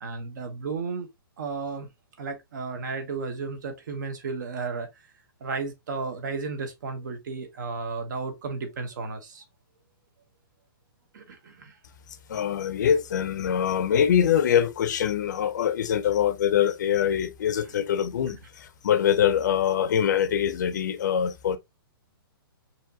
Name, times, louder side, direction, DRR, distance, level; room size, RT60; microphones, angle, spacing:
voice 1, 0.0-1.1 1.4-1.9 2.2-4.9 5.4-9.4 11.1-11.7, right 4 dB, 50° right, 1.3 m, -33 dB
voice 2, 12.3-21.6, left 9 dB, 50° left, 0.7 m, -24 dB
4.7 x 2.8 x 2.9 m
hypercardioid pair, 165°, 12 cm